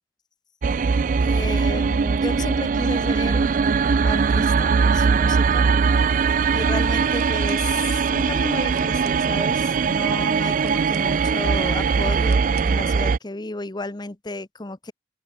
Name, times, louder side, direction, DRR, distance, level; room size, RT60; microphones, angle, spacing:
sound 1, 0.6-13.2, right 5 dB, 45° right, 0.4 m, -21 dB
voice 1, 1.2-3.6 4.0-5.7 6.5-14.9, left 2 dB, 25° left, 0.9 m, -33 dB
sound 2, 3.2-9.1, left 4 dB, 80° left, 3.5 m, -47 dB
sound 3, 7.1-7.7 8.4-8.5 8.7-9.3 10.6-11.4 12.3-12.8, right 10 dB, 65° right, 6.9 m, -49 dB
open air
head